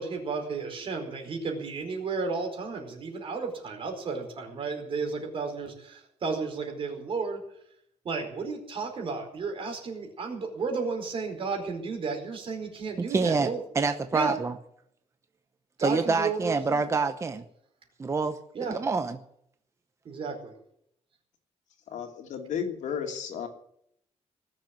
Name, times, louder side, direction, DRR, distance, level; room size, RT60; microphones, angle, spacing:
voice 1, 0.0-7.4 8.0-13.6 14.1-14.3 15.8-16.8 18.5-18.8 20.0-20.5, right 4 dB, 50° right, 3 dB, 4.7 m, -33 dB
voice 2, 13.0-14.5 15.8-17.4 18.0-19.2, right 4 dB, 25° right, 8 dB, 0.9 m, -27 dB
voice 3, 21.9-23.5, left 7 dB, 90° left, 4 dB, 2.8 m, -33 dB
19.5 x 7.6 x 9.5 m, 0.72 s
wide cardioid pair, 160°, 12 cm